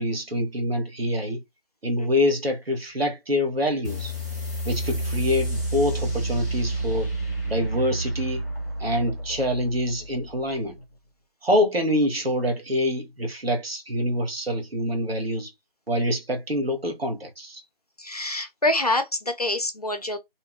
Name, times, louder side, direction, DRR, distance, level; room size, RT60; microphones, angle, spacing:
voice 1, 0.0-1.4 1.8-4.1 4.6-7.1 7.5-8.4 8.8-10.8 11.4-15.5 15.9-17.6, left 1 dB, 85° right, 1.0 m, -25 dB
sound 1, 3.8-11.0, right 1 dB, 20° right, 0.7 m, -30 dB
voice 2, 18.0-20.2, left 2 dB, 40° left, 0.4 m, -26 dB
2.7 x 2.2 x 2.3 m
figure-of-eight pair, 165°, 29 cm